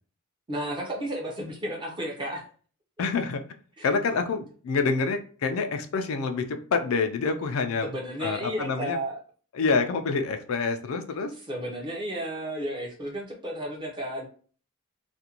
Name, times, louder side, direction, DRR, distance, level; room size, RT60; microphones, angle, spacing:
voice 1, 0.5-2.4 3.8-3.9 7.8-9.2 11.5-14.3, right 1 dB, 20° right, -1 dB, 0.6 m, -33 dB
voice 2, 3.0-3.4 3.8-7.9 8.2-9.0 9.5-11.3, left 4 dB, 70° left, 7 dB, 0.4 m, -27 dB
2.5 x 2.2 x 2.8 m, 0.41 s
head